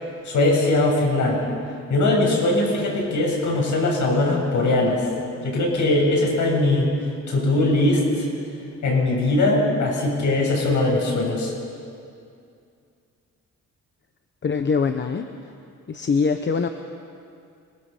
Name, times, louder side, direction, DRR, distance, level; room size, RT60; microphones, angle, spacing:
voice 1, 0.2-1.5 1.9-5.1 5.4-6.9 7.3-8.3 8.8-11.5, left 2 dB, 80° left, -2 dB, 7.7 m, -20 dB
voice 2, 14.4-15.2 15.9-16.7, left 5 dB, 40° left, 7 dB, 1.0 m, -22 dB
29.0 x 22.0 x 7.3 m, 2.4 s
wide cardioid pair, 160°, 30 cm